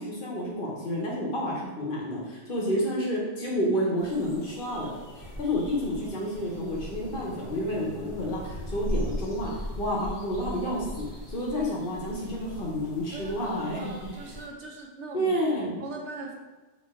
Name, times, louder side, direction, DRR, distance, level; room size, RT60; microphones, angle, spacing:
voice 1, 0.0-4.9 5.2-9.5 9.8-13.9 15.1-15.7, equal, 50° left, -3 dB, 1.1 m, -30 dB
sound 1, 4.0-14.5, equal, 15° left, 1.2 m, -39 dB
voice 2, 13.6-15.4 15.6-16.3, right 3 dB, 70° right, 1 dB, 1.0 m, -40 dB
4.3 x 2.9 x 3.6 m, 1.2 s
omnidirectional pair, 1.3 m